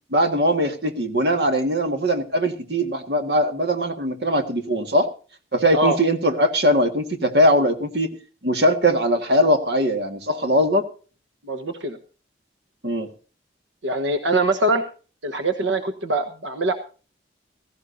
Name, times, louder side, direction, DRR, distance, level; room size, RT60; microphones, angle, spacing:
voice 1, 0.1-5.1 5.5-8.1 8.4-10.9 12.8-13.1, equal, 60° right, 8 dB, 1.7 m, -20 dB
voice 2, 11.4-12.0 13.8-14.8 15.2-16.7, right 2 dB, 85° right, 8 dB, 1.2 m, -23 dB
16.5 x 15.5 x 2.7 m, 0.37 s
head